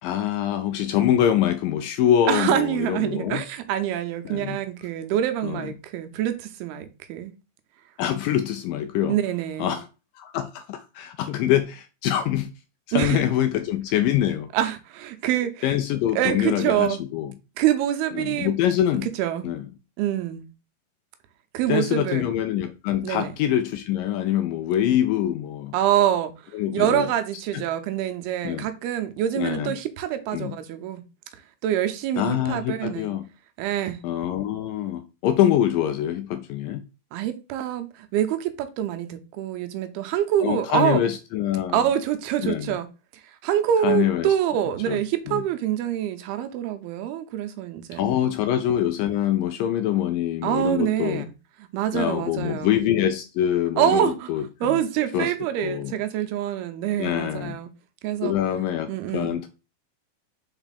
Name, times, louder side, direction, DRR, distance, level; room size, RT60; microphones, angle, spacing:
voice 1, 0.0-3.4 4.3-4.6 5.4-5.7 8.0-9.2 9.6-9.9 10.2-12.5 12.9-14.5 15.6-17.3 18.1-19.1 19.4-19.6 21.7-25.7 26.5-27.1 27.5-27.7 28.4-28.7 29.4-29.8 30.3-30.6 32.2-33.3 34.0-36.8 40.4-41.8 42.4-42.8 43.8-44.3 44.9-45.0 45.3-45.4 47.9-51.3 51.9-54.8 55.1-55.3 55.6-56.0 57.0-57.6 58.2-59.5, left 11 dB, 85° left, 2.0 m, -24 dB
voice 2, 2.3-7.3 9.1-9.8 12.9-13.2 14.5-15.8 16.1-17.0 17.6-18.5 19.0-19.5 20.0-20.5 21.5-22.3 23.0-23.3 25.7-26.3 26.7-31.0 31.6-33.1 33.6-34.0 37.1-41.0 41.7-42.9 43.4-48.3 50.4-51.3 51.7-52.8 53.8-54.3 54.6-57.7 58.0-58.3 58.9-59.4, right 11 dB, 85° right, 2.7 m, -25 dB
5.6 x 4.4 x 4.0 m
omnidirectional pair, 4.4 m